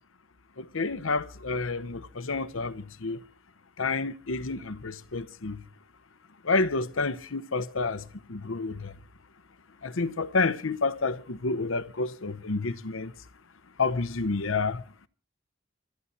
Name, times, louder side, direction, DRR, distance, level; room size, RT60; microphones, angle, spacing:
voice 1, 0.6-3.2 3.8-5.6 6.4-8.9 9.8-13.1 13.8-14.8, left 3 dB, 85° left, 0.9 m, -29 dB
26.5 x 10.5 x 4.1 m
head